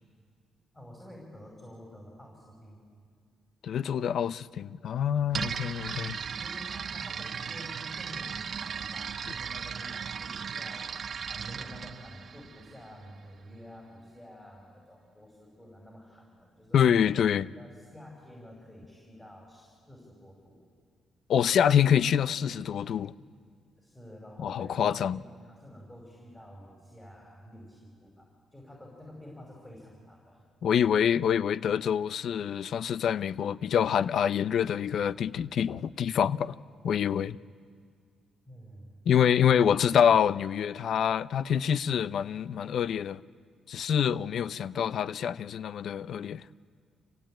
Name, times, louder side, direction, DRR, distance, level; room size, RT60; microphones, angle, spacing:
voice 1, 0.7-2.8 6.1-17.1 17.6-20.5 23.8-30.4 38.5-39.0, equal, 10° left, 5.4 m, -49 dB
voice 2, 3.6-6.2 16.7-17.5 21.3-23.1 24.4-25.2 30.6-36.6 36.8-37.4 39.1-43.2 43.7-46.4, left 8 dB, 65° left, 0.6 m, -26 dB
sound 1, 5.3-13.1, right 6 dB, 50° right, 0.6 m, -37 dB
27.0 x 16.0 x 9.0 m
cardioid pair, 90°, 0 cm